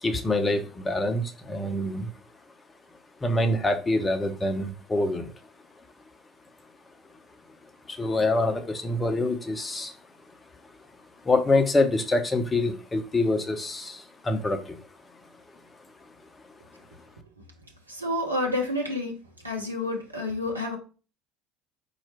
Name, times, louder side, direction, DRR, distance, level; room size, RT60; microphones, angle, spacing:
voice 1, 0.0-2.1 3.2-5.3 7.9-9.9 11.2-14.8, left 2 dB, 20° left, 7 dB, 0.7 m, -25 dB
voice 2, 17.9-19.1 19.4-20.8, left 1 dB, 90° right, 0 dB, 0.7 m, -29 dB
4.3 x 2.4 x 4.4 m, 0.35 s
figure-of-eight pair, 65°, 0 cm